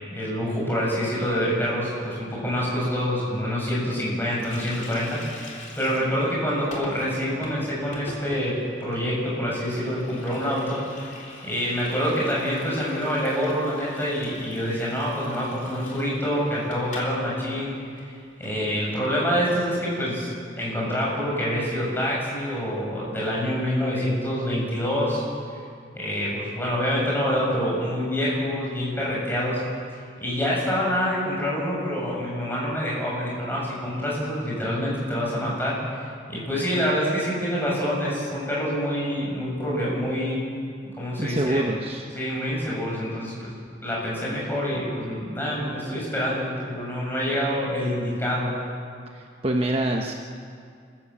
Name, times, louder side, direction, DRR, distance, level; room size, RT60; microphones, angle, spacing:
voice 1, 0.1-11.1 11.4-17.7 18.0-18.1 18.4-20.3 20.5-25.2 26.0-29.6 30.2-36.0 36.3-40.4 41.0-41.6 42.2-43.5 43.8-48.5, equal, 10° left, -5 dB, 7.6 m, -26 dB
Water tap faucet, 4.3-17.2 17.4-17.6 17.9-18.6, left 2 dB, 45° left, 3.5 m, -43 dB
voice 2, 41.2-42.1 49.1-50.1, right 1 dB, 35° right, 1 dB, 1.2 m, -25 dB
27.5 x 15.0 x 7.3 m, 2.2 s
head